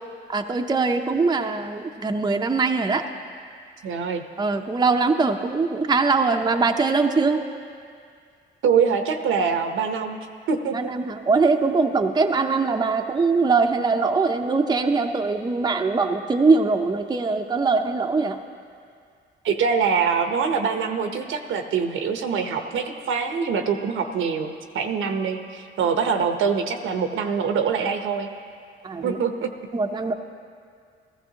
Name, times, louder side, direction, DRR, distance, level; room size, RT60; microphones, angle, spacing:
voice 1, 0.3-3.0 4.4-7.4 10.7-18.4 28.8-29.2 29.7-30.1, right 4 dB, 20° right, 4 dB, 0.7 m, -22 dB
voice 2, 3.8-4.2 8.6-10.2 10.5-10.9 19.4-28.3 29.0-29.5, right 6 dB, 70° right, 6 dB, 0.9 m, -24 dB
15.5 x 14.5 x 2.9 m, 2.2 s
cardioid pair, 80°, 21 cm